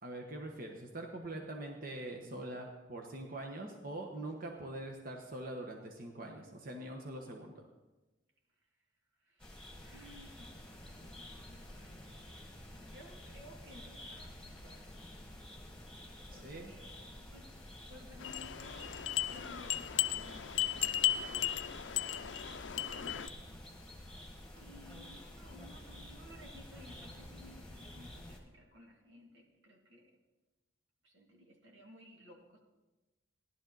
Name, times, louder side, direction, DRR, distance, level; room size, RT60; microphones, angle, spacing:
voice 1, 0.0-7.7 16.3-16.8, right 1 dB, 50° right, 2 dB, 1.2 m, -43 dB
voice 2, 9.2-15.1 16.3-17.6 17.9-23.4 24.5-30.2 31.0-32.6, left 1 dB, 85° right, 0 dB, 2.3 m, -58 dB
sound 1, 9.4-28.4, left 1 dB, 5° left, 1.8 m, -50 dB
sound 2, 18.2-23.3, left 12 dB, 75° left, 0.5 m, -35 dB
16.0 x 11.5 x 4.0 m, 1.1 s
head